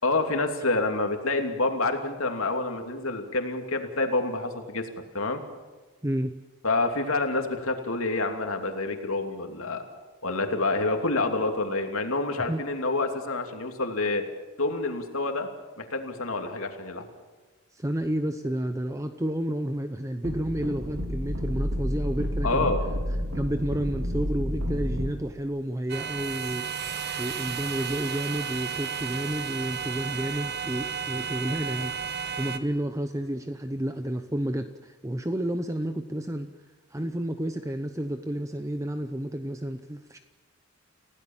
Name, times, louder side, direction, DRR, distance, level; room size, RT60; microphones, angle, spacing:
voice 1, 0.0-4.9 5.1-5.4 6.6-9.8 10.2-14.2 14.6-15.5 15.8-17.1 22.4-22.8, left 2 dB, 80° left, 4 dB, 2.8 m, -27 dB
voice 2, 6.0-6.3 12.5-12.6 17.7-22.7 23.3-26.7 27.2-31.9 32.4-36.5 36.9-40.2, right 1 dB, 15° right, 8 dB, 0.8 m, -30 dB
sound 1, 20.2-25.1, equal, 70° right, 4.0 m, -30 dB
sound 2, 25.9-32.6, right 7 dB, 50° right, 1.3 m, -33 dB
29.5 x 16.5 x 7.3 m, 1.3 s
head